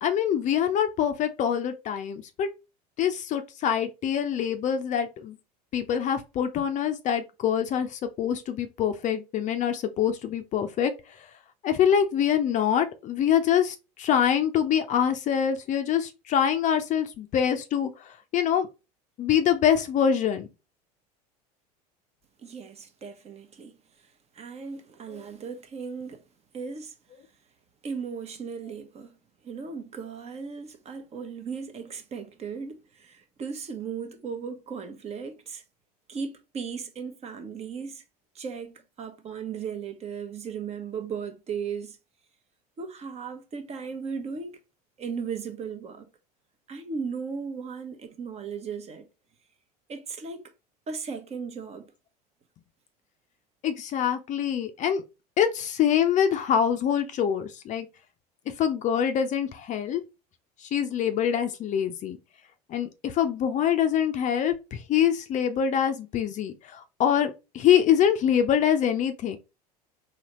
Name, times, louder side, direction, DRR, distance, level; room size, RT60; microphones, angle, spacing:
voice 1, 0.0-2.5 3.0-5.4 5.7-11.2 11.6-18.7 19.2-20.5 25.1-25.2 53.6-55.0 55.4-57.9 58.5-60.0 60.6-62.2 62.7-69.4, left 9 dB, 35° left, 0.6 m, -25 dB
voice 2, 22.4-23.8 24.3-26.2 26.5-27.0 27.8-29.2 29.4-35.6 36.1-38.0 38.3-42.0 42.8-44.6 45.0-46.1 46.7-49.1 49.9-50.4 50.9-51.9, right 6 dB, 30° right, 0.9 m, -36 dB
4.0 x 2.8 x 3.0 m
figure-of-eight pair, 75°, 21 cm